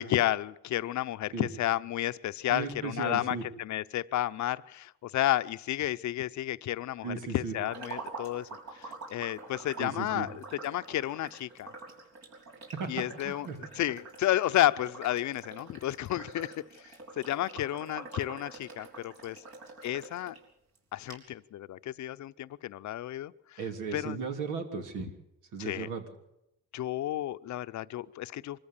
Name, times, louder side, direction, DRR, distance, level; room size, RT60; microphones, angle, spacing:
voice 1, 0.0-8.5 8.7-11.7 12.9-13.5 13.7-16.6 17.2-19.4 19.8-20.4 20.9-23.6 23.9-24.2 25.6-25.9 26.7-28.6, left 13 dB, 70° left, 14 dB, 0.7 m, -31 dB
voice 2, 2.5-3.4 7.0-7.5 9.8-10.3 12.7-13.6 23.6-25.1 25.5-26.0, right 5 dB, 85° right, 5 dB, 3.3 m, -36 dB
sound 1, 7.6-20.4 20.7-20.8 21.1-21.2, right 3 dB, 60° right, 5.8 m, -46 dB
24.0 x 14.5 x 8.3 m, 0.84 s
cardioid pair, 90°, 30 cm